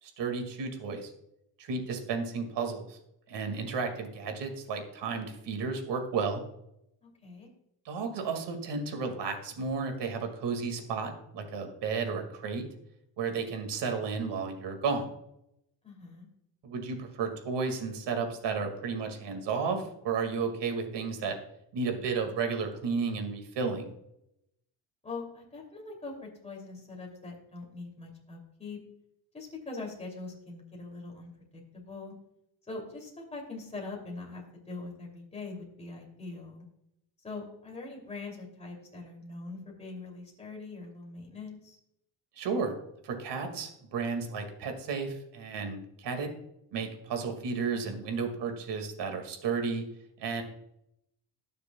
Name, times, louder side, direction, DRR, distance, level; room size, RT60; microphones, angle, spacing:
voice 1, 0.0-1.1 1.6-3.0 3.3-6.4 7.9-12.7 13.2-15.1 16.6-21.4 21.7-23.9 42.4-42.7 43.0-46.3 46.7-49.8 50.2-50.4, right 5 dB, 65° right, 5 dB, 2.1 m, -33 dB
voice 2, 7.0-7.5 15.8-16.3 25.0-26.1 26.4-28.8 29.3-32.1 32.7-36.7 37.2-41.8, left 3 dB, 15° left, -1 dB, 2.7 m, -42 dB
19.5 x 6.8 x 2.3 m, 0.81 s
cardioid pair, 135°, 44 cm